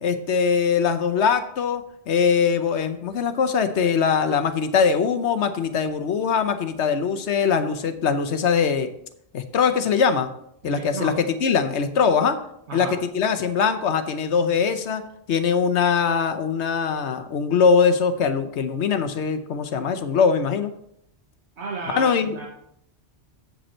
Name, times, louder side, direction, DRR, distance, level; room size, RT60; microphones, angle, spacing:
voice 1, 0.0-8.9 9.3-10.3 10.6-12.4 12.7-12.9 13.1-15.0 15.3-20.7 21.9-22.5, left 6 dB, 90° left, 9 dB, 1.1 m, -22 dB
voice 2, 10.6-11.1 12.7-13.0 21.6-22.5, right 3 dB, 90° right, 0 dB, 1.5 m, -33 dB
7.8 x 7.8 x 4.3 m, 0.73 s
omnidirectional pair, 1.1 m